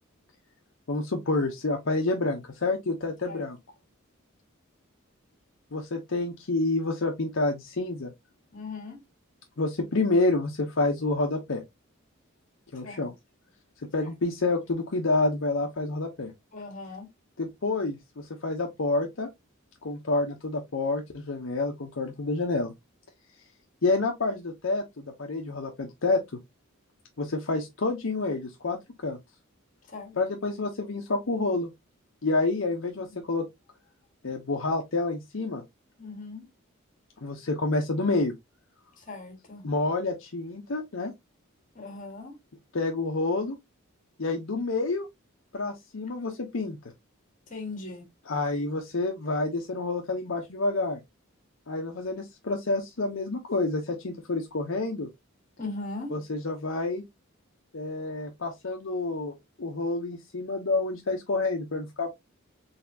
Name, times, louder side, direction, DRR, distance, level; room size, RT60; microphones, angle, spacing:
voice 1, 0.9-3.6 5.7-8.1 9.6-11.6 12.7-13.1 13.9-16.3 17.4-19.3 19.8-22.7 23.8-26.2 27.2-28.8 29.0-29.2 30.1-31.7 32.2-33.5 34.2-35.6 37.2-38.3 39.6-41.1 42.7-43.6 44.2-45.1 45.5-46.8 48.3-51.0 51.7-55.1 56.1-57.0 57.7-62.1, left 2 dB, 70° left, 0.7 m, -28 dB
voice 2, 8.5-9.0 12.8-13.0 16.5-17.1 29.9-30.2 36.0-36.4 39.1-39.6 41.7-42.3 47.5-48.1 55.6-56.1, left 3 dB, 40° left, 1.6 m, -38 dB
4.1 x 3.4 x 2.7 m
head